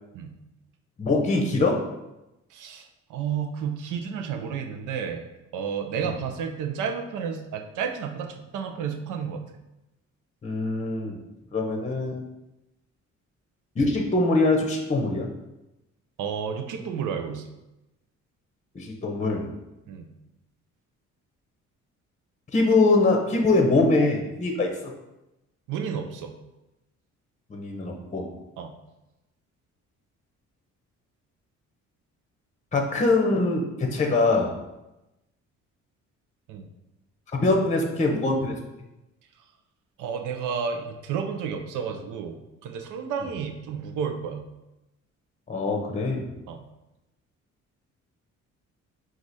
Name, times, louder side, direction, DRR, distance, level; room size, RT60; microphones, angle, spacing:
voice 1, 1.0-1.8 10.4-11.2 11.5-12.2 13.8-15.3 18.7-19.5 22.5-24.7 27.5-28.3 32.7-34.5 37.3-38.6 45.5-46.2, left 2 dB, 25° left, 2 dB, 0.7 m, -23 dB
voice 2, 2.5-5.3 5.5-9.4 16.2-17.4 19.9-20.1 25.7-26.3 28.6-28.7 36.5-36.7 40.0-44.4 46.5-46.6, right 7 dB, 85° right, 5 dB, 0.6 m, -31 dB
4.7 x 2.5 x 4.0 m, 0.96 s
cardioid pair, 90°, 30 cm